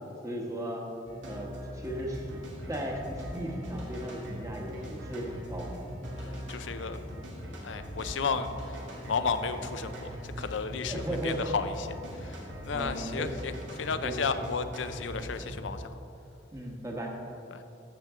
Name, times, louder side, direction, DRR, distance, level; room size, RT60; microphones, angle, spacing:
voice 1, 0.2-0.8 1.2-2.4 2.7-5.7 10.9-11.5 12.7-13.6 14.0-14.2 16.5-17.2, right 1 dB, 15° right, 0 dB, 1.2 m, -36 dB
sound 1, 1.0-15.6, equal, 85° right, 2.0 m, -41 dB
voice 2, 6.2-7.0 7.6-8.5 9.1-10.1 10.4-11.9 12.2-13.5 13.8-15.9 17.5-17.6, left 5 dB, 85° left, 10 dB, 0.6 m, -33 dB
14.5 x 6.8 x 3.7 m, 2.9 s
head